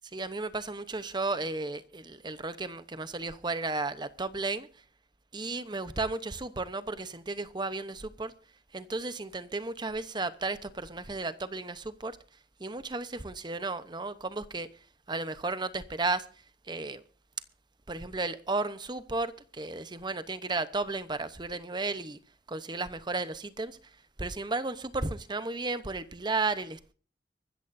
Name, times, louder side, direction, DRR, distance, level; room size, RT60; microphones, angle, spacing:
voice 1, 0.1-4.7 5.3-8.3 8.7-12.2 12.6-14.7 15.1-16.3 16.7-17.0 17.9-22.2 22.5-23.8 24.2-26.9, right 3 dB, 25° right, 0.9 m, -34 dB
24.5 x 13.5 x 2.7 m
head